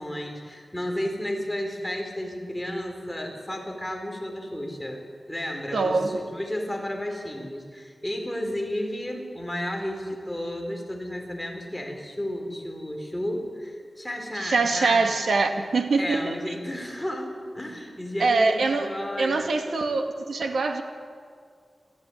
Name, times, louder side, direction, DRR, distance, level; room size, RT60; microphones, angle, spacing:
voice 1, 0.0-15.1 16.0-19.6, left 1 dB, 5° left, 2 dB, 4.2 m, -32 dB
voice 2, 5.7-6.1 14.4-16.4 18.2-18.9 19.2-20.8, right 3 dB, 90° right, 5 dB, 2.1 m, -23 dB
26.0 x 15.0 x 9.8 m, 2.1 s
wide cardioid pair, 110°, 0 cm